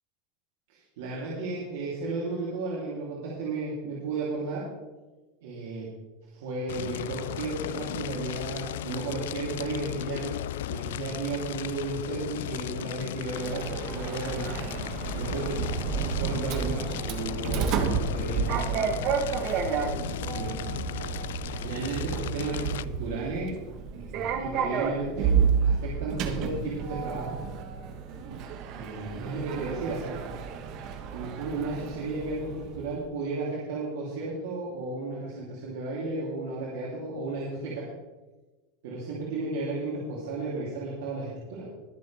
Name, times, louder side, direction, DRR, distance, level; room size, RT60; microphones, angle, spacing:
voice 1, 0.7-4.6 5.4-5.9 6.3-10.3 10.7-14.5 15.1-15.6 16.1-19.0 20.3-20.5 21.6-23.5 23.9-25.3 25.6-27.4 28.7-30.2 31.1-37.9 38.8-41.7, right 3 dB, 75° right, -6 dB, 3.3 m, -34 dB
Fire, 6.7-22.8, left 13 dB, 85° left, 0.3 m, -36 dB
Sliding door, 13.4-33.0, right 6 dB, 45° right, 1.3 m, -31 dB
22.5 x 7.5 x 3.5 m, 1.2 s
supercardioid pair, 150°, 0 cm